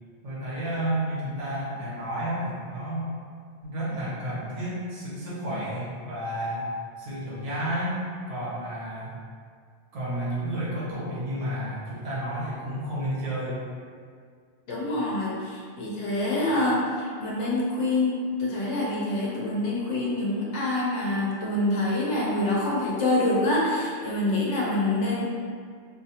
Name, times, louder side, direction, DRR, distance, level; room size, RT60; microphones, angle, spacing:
voice 1, 0.2-3.1 3.6-6.7 7.0-8.0 8.3-9.1 9.9-13.6, right 1 dB, 70° right, -9 dB, 1.2 m, -31 dB
voice 2, 14.7-25.2, left 2 dB, 70° left, -5 dB, 0.9 m, -26 dB
2.7 x 2.4 x 2.7 m, 2.1 s
omnidirectional pair, 1.3 m